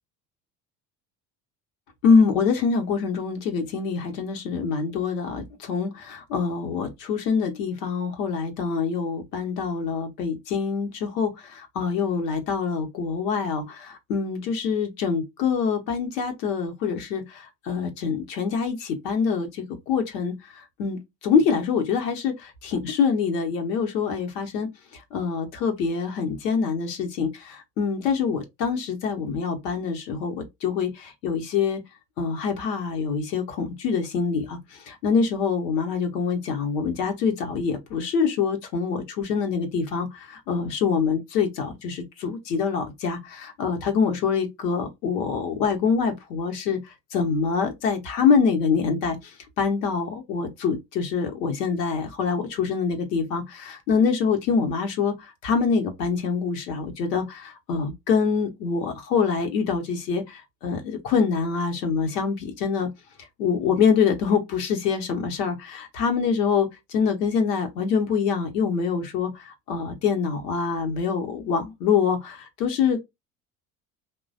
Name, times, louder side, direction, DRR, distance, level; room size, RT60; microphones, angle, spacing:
voice 1, 2.0-20.3 20.8-24.7 25.1-31.8 32.2-34.6 34.9-46.8 47.1-49.2 49.6-55.1 55.4-62.9 63.4-73.0, left 5 dB, 75° left, 0.9 m, -25 dB
3.0 x 2.3 x 2.5 m
figure-of-eight pair, 60°, 49 cm